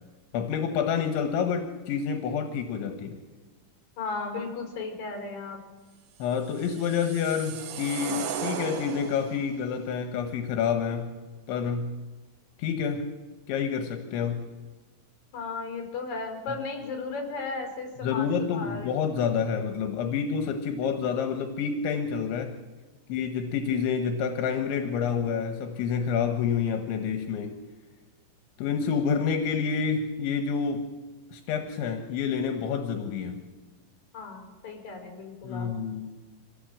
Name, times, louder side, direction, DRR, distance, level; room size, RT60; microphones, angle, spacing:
voice 1, 0.3-3.2 6.2-11.1 11.5-12.0 12.6-13.1 13.5-14.5 18.0-22.6 23.1-27.6 28.6-30.9 31.3-33.5 35.4-36.1, left 6 dB, 80° left, 5 dB, 3.6 m, -28 dB
voice 2, 4.0-5.6 15.3-18.9 20.8-20.9 23.5-23.6 34.1-35.7, left 4 dB, 40° left, 3 dB, 6.0 m, -35 dB
sound 1, 6.3-9.5, right 7 dB, 65° right, 2.6 m, -36 dB
25.0 x 17.0 x 7.6 m, 1.3 s
omnidirectional pair, 5.3 m